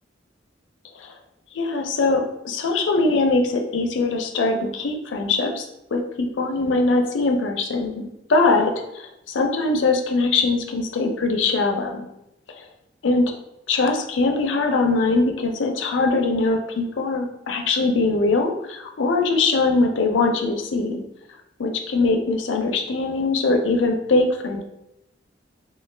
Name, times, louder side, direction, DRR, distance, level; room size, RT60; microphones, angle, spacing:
voice 1, 1.5-5.6 5.9-12.1 12.5-12.6 13.0-13.2 13.7-21.1 21.6-24.6, left 3 dB, 90° left, 4 dB, 0.5 m, -22 dB
3.1 x 2.3 x 3.2 m, 0.86 s
head